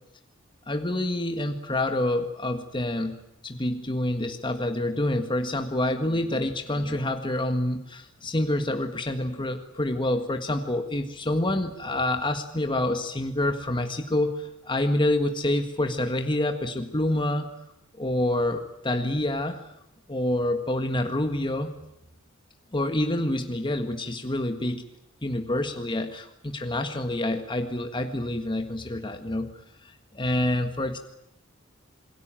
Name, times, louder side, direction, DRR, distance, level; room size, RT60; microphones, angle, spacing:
voice 1, 0.7-3.1 3.4-17.5 18.0-19.6 20.1-21.7 22.7-24.8 25.2-29.5 29.8-31.0, left 1 dB, 25° left, 6 dB, 1.7 m, -27 dB
27.5 x 21.5 x 9.0 m, 0.80 s
head